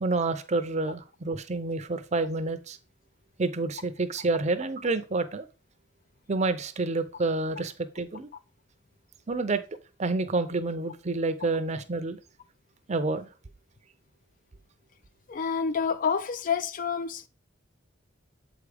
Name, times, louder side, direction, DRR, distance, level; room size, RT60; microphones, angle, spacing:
voice 1, 0.0-2.8 3.4-5.5 6.3-8.3 9.3-9.6 10.0-12.2 12.9-13.3, right 3 dB, 35° right, 0.6 m, -28 dB
voice 2, 15.3-17.3, left 6 dB, 45° left, 0.4 m, -28 dB
7.5 x 4.8 x 3.4 m
head